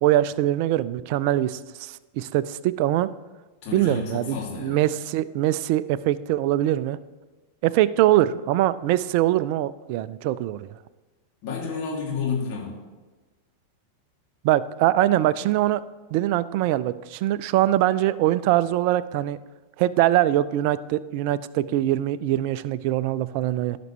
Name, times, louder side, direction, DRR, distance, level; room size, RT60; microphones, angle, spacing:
voice 1, 0.0-3.1 3.7-7.0 7.6-10.8 14.4-15.8 16.1-19.4 19.8-23.8, right 14 dB, 45° right, 17 dB, 0.4 m, -23 dB
voice 2, 3.6-4.8 11.4-12.7, left 5 dB, 40° left, -3 dB, 2.8 m, -30 dB
16.5 x 6.0 x 3.3 m, 1.2 s
figure-of-eight pair, 90°, 0 cm